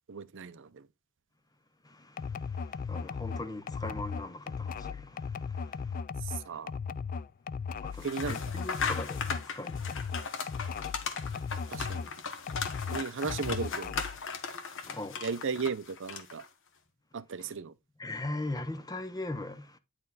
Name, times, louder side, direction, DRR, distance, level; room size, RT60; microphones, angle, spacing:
voice 1, 0.1-0.9 6.2-6.7 8.0-8.4 11.7-12.1 12.9-13.9 15.2-16.4 17.1-17.7, right 5 dB, 60° right, 0.6 m, -35 dB
voice 2, 1.8-6.0 7.8-12.1 14.8-15.2 17.4-17.5 18.0-19.8, left 2 dB, 20° left, 0.8 m, -41 dB
sound 1, 2.2-12.1 12.5-14.2, left 5 dB, 40° left, 0.3 m, -37 dB
sound 2, 8.0-16.5, left 5 dB, 60° left, 1.2 m, -38 dB
9.6 x 4.4 x 4.0 m
head